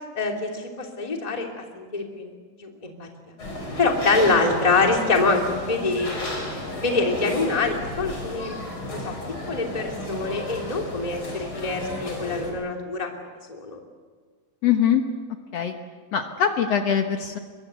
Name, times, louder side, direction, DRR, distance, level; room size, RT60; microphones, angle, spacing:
voice 1, 0.1-1.5 1.7-2.3 2.6-3.1 3.8-6.5 6.8-8.6 8.9-9.1 9.5-13.1 13.5-13.8, left 3 dB, 10° left, 1 dB, 2.3 m, -25 dB
sound 1, 3.4-12.5, left 2 dB, 30° left, 5.8 m, -33 dB
voice 2, 14.6-15.0 15.5-15.8 16.1-17.4, left 8 dB, 75° left, 5 dB, 1.4 m, -22 dB
23.0 x 23.0 x 8.3 m, 1.5 s
omnidirectional pair, 4.6 m